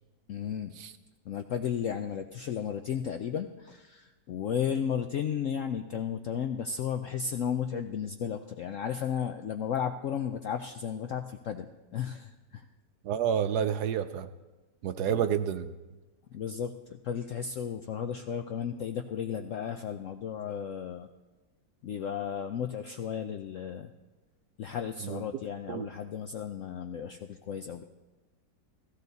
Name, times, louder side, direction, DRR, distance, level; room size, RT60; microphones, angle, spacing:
voice 1, 0.3-0.7 1.3-12.7 15.1-15.3 16.3-21.1 21.8-23.9 24.6-27.8, left 8 dB, 70° left, 6 dB, 0.7 m, -34 dB
voice 2, 13.0-14.3 14.8-15.7 25.0-25.2 25.7-25.9, right 8 dB, 70° right, 11 dB, 1.1 m, -29 dB
15.5 x 14.5 x 4.0 m, 1.2 s
omnidirectional pair, 1.9 m